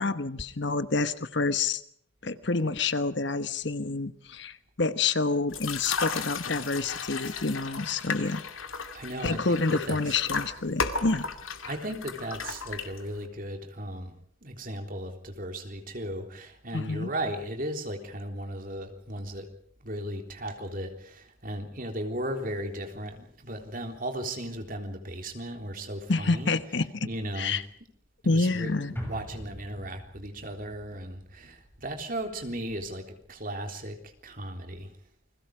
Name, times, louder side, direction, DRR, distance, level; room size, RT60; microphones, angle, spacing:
voice 1, 0.0-1.8 2.2-8.4 9.2-11.2 16.7-17.1 26.1-27.1 27.4-27.6 28.2-28.9, left 3 dB, 55° left, 12 dB, 1.2 m, -28 dB
sound 1, 5.5-13.3, left 5 dB, 80° left, 2.4 m, -35 dB
voice 2, 8.9-10.2 11.6-14.1 14.4-19.5 19.8-26.5 27.0-27.6 28.2-34.9, right 1 dB, 45° right, 4 dB, 3.7 m, -36 dB
sound 2, 29.0-33.4 33.7-33.8, equal, 10° left, 6.6 m, -44 dB
29.0 x 22.0 x 5.0 m, 0.64 s
head